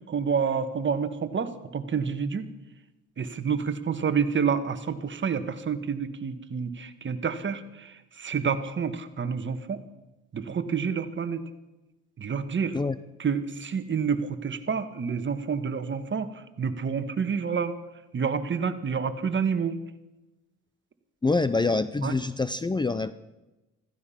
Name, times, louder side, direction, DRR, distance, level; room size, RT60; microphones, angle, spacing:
voice 1, 0.1-2.5 3.2-9.8 10.3-11.4 12.2-12.8 13.2-17.7 18.1-19.8 22.0-22.2, right 6 dB, 40° right, 9 dB, 1.5 m, -28 dB
voice 2, 21.2-23.1, left 3 dB, 15° left, 14 dB, 0.5 m, -25 dB
15.5 x 15.0 x 5.8 m, 1.0 s
cardioid pair, 90°, 30 cm